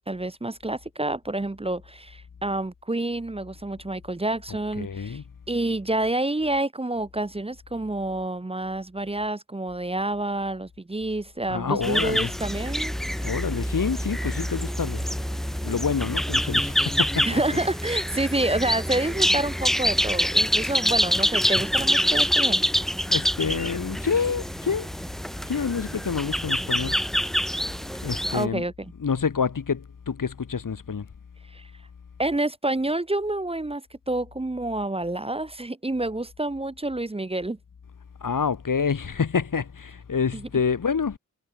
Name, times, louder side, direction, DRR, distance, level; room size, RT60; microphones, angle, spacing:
voice 1, 0.1-5.2 5.5-13.3 17.3-22.6 28.3-28.9 31.5-31.7 32.2-37.6 40.3-40.4, right 2 dB, 20° right, 0.6 m, -28 dB
voice 2, 4.8-5.2 11.5-12.3 13.2-15.1 15.6-17.4 23.1-24.9 25.5-27.0 28.0-28.6 29.0-31.1 38.2-41.2, left 6 dB, 70° left, 1.1 m, -27 dB
sound 1, 11.8-28.4, equal, ahead, 1.0 m, -26 dB
wide cardioid pair, 45°, 33 cm